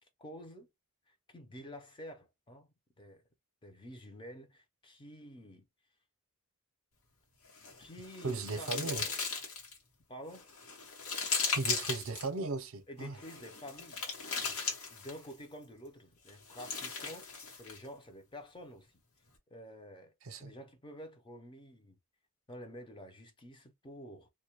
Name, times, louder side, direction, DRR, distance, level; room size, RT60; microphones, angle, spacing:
voice 1, 0.2-0.7 1.1-2.7 3.0-3.2 3.6-5.6 7.8-9.1 10.1-10.5 12.9-14.0 14.9-17.3 17.5-18.9 19.5-22.0 22.5-24.3, equal, 20° left, 0.5 m, -49 dB
sound 1, 7.5-9.8 10.3-12.3 13.2-15.3 16.3-17.8, left 5 dB, 75° left, 1.0 m, -37 dB
voice 2, 8.2-9.1 11.5-13.2 20.2-20.5, right 3 dB, 65° right, 0.5 m, -36 dB
2.2 x 2.1 x 2.8 m
head